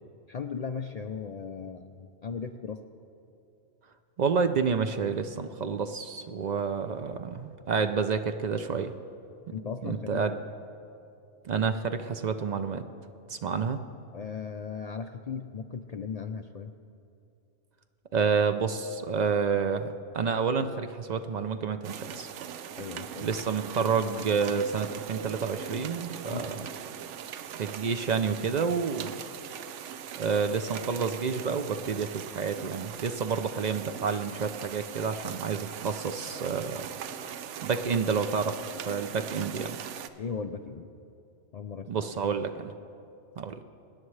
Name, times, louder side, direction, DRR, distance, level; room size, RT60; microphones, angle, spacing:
voice 1, 0.3-2.8 9.5-10.4 14.1-16.7 22.8-23.4 26.3-26.5 40.2-40.9 41.5-42.1, left 6 dB, 80° left, 6 dB, 0.3 m, -37 dB
voice 2, 4.2-8.9 9.8-10.3 11.4-12.8 13.3-13.8 18.1-22.3 23.2-26.7 27.6-29.2 30.2-36.9 37.6-38.5 38.9-39.8 41.9-42.7 43.4-43.6, right 5 dB, 60° right, 7 dB, 0.4 m, -29 dB
sound 1, 21.8-40.1, right 9 dB, 75° right, 0.9 m, -40 dB
25.0 x 10.0 x 3.2 m, 2.7 s
omnidirectional pair, 1.2 m